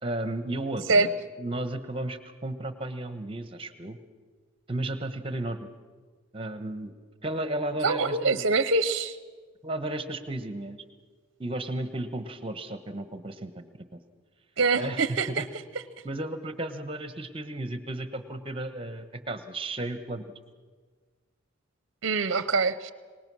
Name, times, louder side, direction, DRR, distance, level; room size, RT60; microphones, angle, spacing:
voice 1, 0.0-4.0 4.7-5.7 6.3-6.9 7.2-8.4 9.6-10.8 11.4-13.7 13.9-14.0 14.8-15.5 16.0-20.2, right 1 dB, 25° right, 10 dB, 1.1 m, -34 dB
voice 2, 7.8-9.2 14.6-15.4 22.0-22.9, right 3 dB, 55° right, 14 dB, 0.6 m, -24 dB
24.0 x 20.0 x 6.3 m, 1.5 s
head